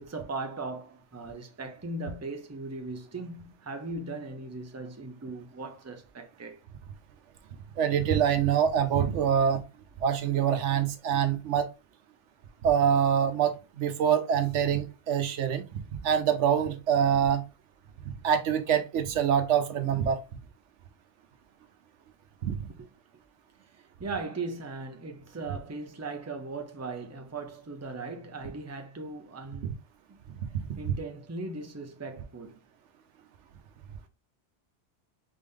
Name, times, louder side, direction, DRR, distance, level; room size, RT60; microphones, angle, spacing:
voice 1, 0.0-6.6 22.8-22.9 23.8-29.8 30.1-30.2 30.8-32.6, right 3 dB, 15° right, 0.6 m, -38 dB
voice 2, 7.8-9.6 10.0-11.7 12.6-15.6 16.0-17.4 18.2-20.2 22.4-22.5 30.4-30.9, right 8 dB, 90° right, 1.1 m, -25 dB
4.1 x 3.5 x 3.6 m
omnidirectional pair, 1.2 m